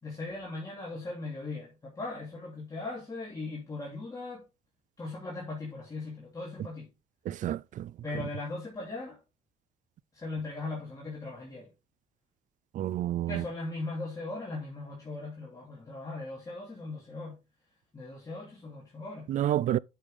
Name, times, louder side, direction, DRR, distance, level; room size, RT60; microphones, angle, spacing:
voice 1, 0.0-4.4 5.0-6.9 8.0-9.2 10.1-11.7 13.3-17.4 17.9-19.3, left 2 dB, 20° left, 2.9 m, -39 dB
voice 2, 7.3-7.9 12.7-13.4 19.3-19.8, right 12 dB, 50° right, 0.4 m, -29 dB
8.9 x 6.4 x 3.6 m
cardioid pair, 110°, 17 cm